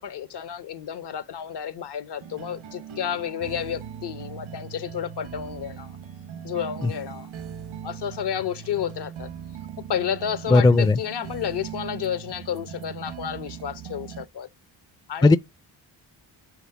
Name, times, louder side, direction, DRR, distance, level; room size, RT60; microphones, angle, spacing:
voice 1, 0.0-6.0 6.4-7.3 7.8-9.3 9.8-14.5 15.1-15.4, left 9 dB, 60° left, 0.8 m, -31 dB
sound 1, 2.2-14.2, right 8 dB, 80° right, 1.0 m, -39 dB
voice 2, 10.5-11.0 15.2-15.4, left 3 dB, 10° left, 0.4 m, -16 dB
6.4 x 3.2 x 4.7 m
cardioid pair, 60°, 47 cm